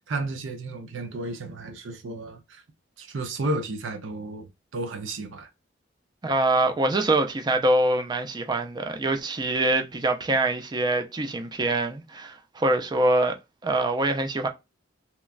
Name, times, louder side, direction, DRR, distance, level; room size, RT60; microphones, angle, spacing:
voice 1, 0.1-2.6 3.0-4.5 4.7-5.5, right 2 dB, 85° right, 0.6 m, -32 dB
voice 2, 6.2-13.3 13.6-14.5, right 2 dB, 20° right, 0.4 m, -24 dB
3.0 x 2.2 x 2.3 m
head